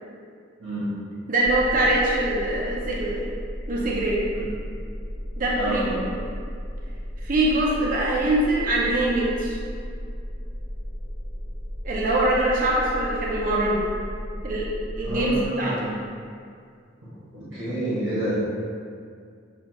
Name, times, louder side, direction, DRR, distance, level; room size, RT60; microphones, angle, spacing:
voice 1, 1.3-3.2 3.7-4.2 5.4-6.1 7.2-9.6 11.8-13.9 14.4-14.7 15.0-15.9, right 1 dB, 45° right, -4 dB, 0.5 m, -23 dB
sound 1, 1.4-15.5, equal, 45° left, 0.8 m, -34 dB
voice 2, 5.5-6.0 15.0-15.9 17.3-18.4, right 1 dB, 70° right, -12 dB, 1.2 m, -28 dB
6.8 x 2.3 x 2.9 m, 2.2 s
head